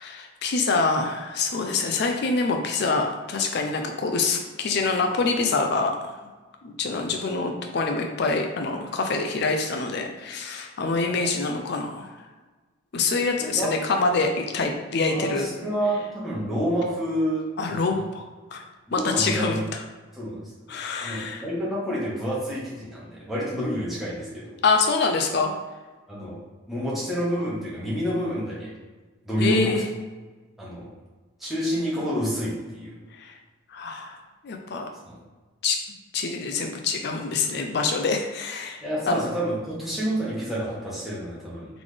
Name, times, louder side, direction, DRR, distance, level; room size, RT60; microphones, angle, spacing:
voice 1, 0.0-6.2 6.6-12.1 12.9-15.5 17.6-18.6 18.9-19.5 20.7-21.4 24.6-25.5 29.4-29.9 33.1-33.3 33.7-34.9 35.6-35.8 36.1-38.8 39.1-39.2, left 4 dB, 50° left, 3 dB, 0.4 m, -25 dB
voice 2, 15.1-17.8 18.9-19.6 20.1-20.5 21.0-24.6 26.1-26.4 26.7-28.7 29.2-29.8 30.6-30.9 31.4-32.9 35.1-35.2 38.8-41.7, equal, ahead, -8 dB, 1.2 m, -28 dB
3.9 x 3.5 x 3.3 m, 1.3 s
head